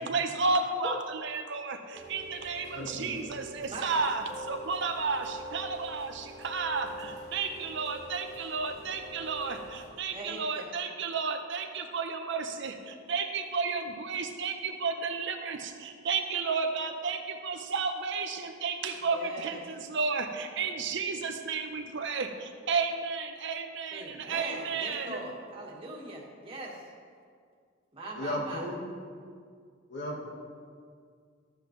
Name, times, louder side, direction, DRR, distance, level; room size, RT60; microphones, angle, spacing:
voice 1, 0.0-25.2, right 4 dB, 60° right, 6 dB, 0.8 m, -32 dB
Rain, 1.9-9.9, equal, 35° left, 1.7 m, -45 dB
voice 2, 2.7-3.2 28.1-28.9 29.9-30.3, left 1 dB, 60° left, -1 dB, 1.5 m, -35 dB
voice 3, 3.7-4.1 10.1-10.7 19.0-19.6 23.9-26.8 27.9-28.7, right 2 dB, 25° right, -4 dB, 1.7 m, -41 dB
13.0 x 7.9 x 3.2 m, 2.1 s
head